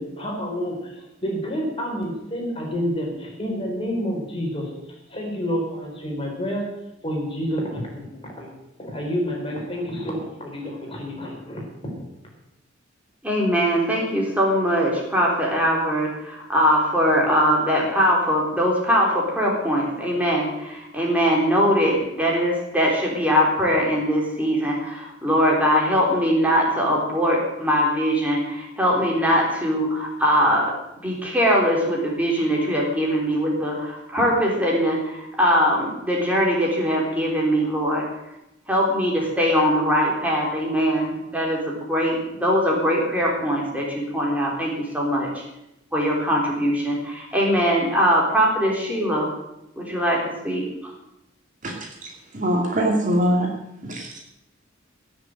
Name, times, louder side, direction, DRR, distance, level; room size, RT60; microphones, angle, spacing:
voice 1, 0.0-4.7 5.1-6.8 7.0-8.5 8.8-11.9, equal, 30° left, -1 dB, 4.3 m, -29 dB
voice 2, 13.2-30.7 31.0-38.1 38.7-45.4 45.9-49.3 49.8-50.9, equal, 10° right, -2 dB, 3.8 m, -21 dB
voice 3, 51.6-53.5 53.8-54.2, equal, 40° right, 1 dB, 2.5 m, -23 dB
17.5 x 6.9 x 7.8 m, 0.88 s
head